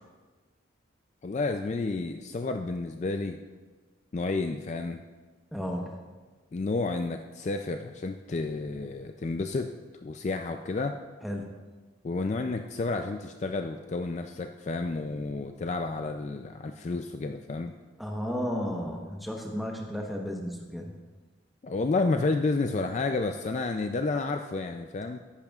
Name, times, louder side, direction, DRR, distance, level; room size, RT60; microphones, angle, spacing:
voice 1, 1.2-3.4 4.1-5.0 6.5-9.7 10.0-10.9 12.0-17.7 21.6-25.2, left 3 dB, 35° left, 6 dB, 0.3 m, -30 dB
voice 2, 5.5-6.0 11.2-11.4 18.0-20.9, equal, ahead, 0 dB, 1.0 m, -33 dB
14.0 x 10.5 x 2.4 m, 1.3 s
head